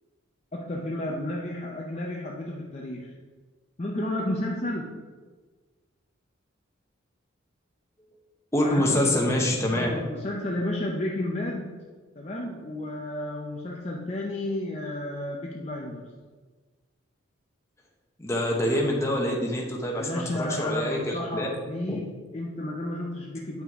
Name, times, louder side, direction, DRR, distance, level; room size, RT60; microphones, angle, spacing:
voice 1, 0.5-3.1 3.8-5.0 8.6-9.2 9.7-11.8 12.2-16.0 19.9-23.6, left 1 dB, 30° left, -2 dB, 0.6 m, -32 dB
voice 2, 8.5-9.9 18.2-21.5 21.9-22.0, left 1 dB, 15° left, -1 dB, 1.0 m, -25 dB
8.9 x 5.8 x 3.6 m, 1.4 s
head